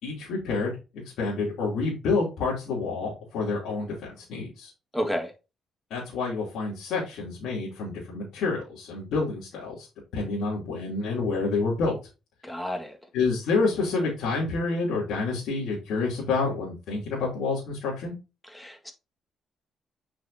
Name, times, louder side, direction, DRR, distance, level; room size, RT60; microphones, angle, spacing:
voice 1, 0.0-4.7 5.9-9.9 10.1-11.9 13.1-18.1, left 4 dB, 85° left, 2.9 m, -28 dB
voice 2, 4.9-5.3 12.4-13.0 18.5-18.9, equal, 5° left, 1.7 m, -31 dB
7.5 x 5.9 x 2.7 m
cardioid pair, 90°, 0 cm